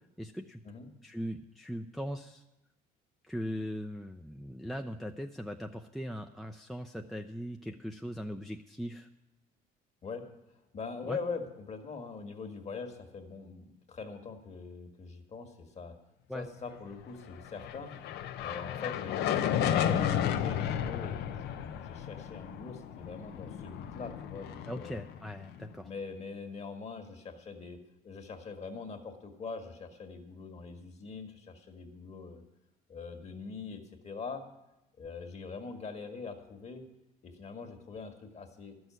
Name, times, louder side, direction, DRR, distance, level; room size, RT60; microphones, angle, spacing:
voice 1, 0.0-0.6 1.0-2.4 3.3-9.1 11.1-11.2 16.3-16.5 24.7-25.9, equal, ahead, 4 dB, 0.5 m, -39 dB
voice 2, 10.7-16.0 16.3-17.9 18.4-25.0 25.8-32.4 32.9-34.5 35.0-36.9 37.2-38.8, left 4 dB, 40° left, 6 dB, 1.7 m, -43 dB
sound 1, 17.3-25.7, left 9 dB, 80° left, 0.8 m, -33 dB
12.0 x 6.3 x 9.2 m, 0.94 s
cardioid pair, 110°, 17 cm